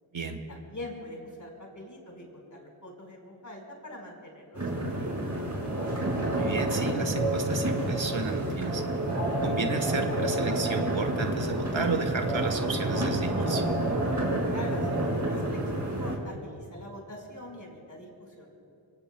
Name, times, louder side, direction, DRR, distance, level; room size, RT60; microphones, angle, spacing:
voice 1, 0.5-5.6 14.5-18.5, left 1 dB, 40° left, 0 dB, 4.8 m, -44 dB
sound 1, 4.6-16.2, right 1 dB, 35° right, 4.9 m, -29 dB
voice 2, 6.3-8.8 9.4-13.6, right 4 dB, 75° right, 6 dB, 1.4 m, -32 dB
26.0 x 24.0 x 2.3 m, 2.8 s
wide cardioid pair, 65°, 47 cm